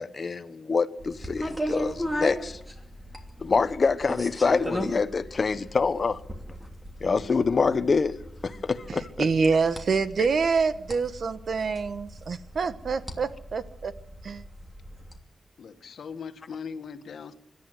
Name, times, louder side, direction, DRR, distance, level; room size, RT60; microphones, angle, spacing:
voice 1, 0.0-2.6 3.4-6.2 7.0-8.2 8.4-9.3, left 4 dB, 40° left, 1.2 m, -26 dB
sound 1, 1.0-15.2, equal, 5° right, 2.9 m, -37 dB
voice 2, 9.2-13.9 14.2-14.4, right 5 dB, 60° right, 1.3 m, -26 dB
voice 3, 15.6-17.3, left 6 dB, 75° left, 1.8 m, -39 dB
25.5 x 12.0 x 9.5 m
wide cardioid pair, 125°, 0 cm